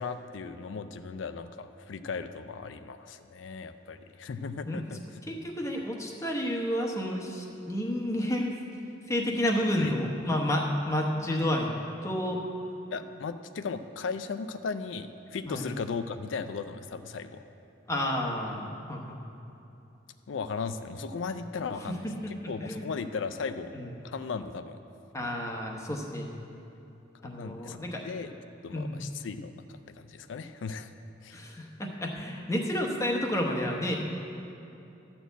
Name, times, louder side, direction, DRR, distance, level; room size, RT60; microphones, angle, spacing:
voice 1, 0.0-5.2 9.8-9.9 11.2-11.3 12.9-17.5 20.3-22.0 22.3-23.8 24.0-24.8 27.2-27.8 28.0-28.3 28.6-30.9 31.2-31.4, left 5 dB, 90° left, 10 dB, 0.4 m, -37 dB
voice 2, 5.3-8.6 9.1-11.7 12.0-12.4 15.5-15.6 17.9-19.2 22.0-22.9 23.7-23.9 25.1-26.3 27.2-28.0 28.7-29.0 31.3-34.0, left 1 dB, 15° left, 0 dB, 0.9 m, -30 dB
12.5 x 4.4 x 8.0 m, 2.8 s
head